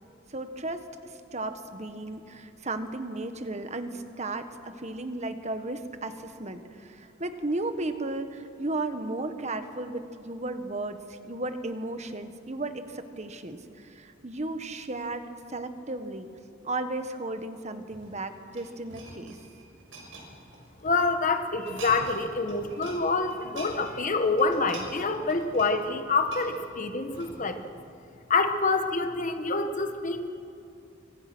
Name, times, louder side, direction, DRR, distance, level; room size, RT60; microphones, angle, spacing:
voice 1, 0.3-16.3 16.6-19.4, right 2 dB, 35° right, 9 dB, 1.4 m, -35 dB
sound 1, 17.9-21.1 21.5-22.2 22.5-23.0 23.3-27.6 28.1-28.3, right 2 dB, 80° right, 6.4 m, -45 dB
voice 2, 20.8-27.8 28.3-30.3, left 3 dB, 40° left, 7 dB, 1.4 m, -27 dB
26.5 x 25.0 x 6.2 m, 2.6 s
head